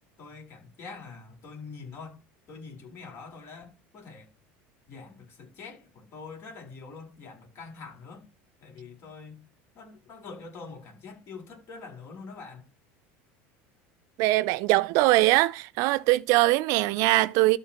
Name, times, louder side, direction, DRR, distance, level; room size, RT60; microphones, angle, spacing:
voice 1, 0.2-2.2 2.5-4.3 4.9-8.3 8.6-9.4 9.7-12.7, left 4 dB, 45° left, 4.8 m, -44 dB
voice 2, 14.2-17.6, right 19 dB, 65° right, 0.6 m, -22 dB
12.5 x 4.4 x 4.4 m
supercardioid pair, 115°, 6 cm